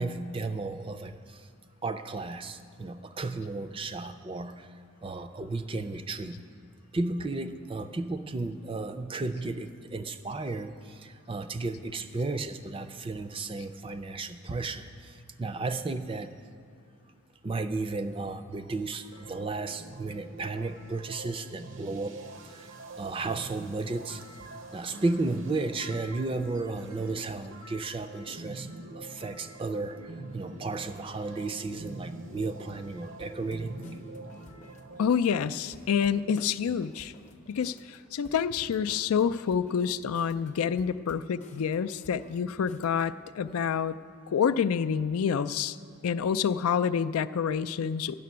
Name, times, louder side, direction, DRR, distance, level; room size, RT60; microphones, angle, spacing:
voice 1, 0.0-1.5 1.8-4.7 5.0-6.4 6.9-16.3 17.4-22.7 23.0-24.2 24.7-28.7 29.0-33.8, right 3 dB, 25° right, 10 dB, 0.4 m, -34 dB
sound 1, 19.1-35.1, right 2 dB, 60° right, 0.6 m, -45 dB
sound 2, 33.2-43.1, left 2 dB, 35° left, 0.6 m, -54 dB
voice 2, 35.0-37.1 37.5-44.0 44.3-45.8 46.0-48.1, left 7 dB, 85° left, 12 dB, 0.4 m, -28 dB
12.5 x 6.7 x 9.4 m, 2.4 s
head